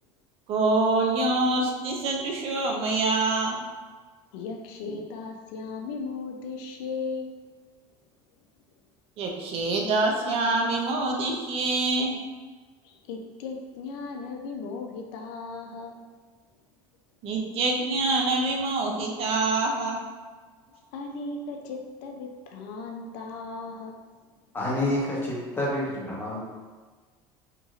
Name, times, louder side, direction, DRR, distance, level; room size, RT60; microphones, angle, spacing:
voice 1, 0.5-3.6 4.9-5.0 9.2-12.1 17.2-20.0, right 2 dB, 50° right, 1 dB, 0.5 m, -25 dB
voice 2, 4.3-7.4 12.8-16.0 20.7-24.0, left 4 dB, 75° left, 2 dB, 0.4 m, -37 dB
voice 3, 24.5-26.4, left 1 dB, 15° left, -5 dB, 0.9 m, -28 dB
2.9 x 2.7 x 2.4 m, 1.4 s
supercardioid pair, 120°, 13 cm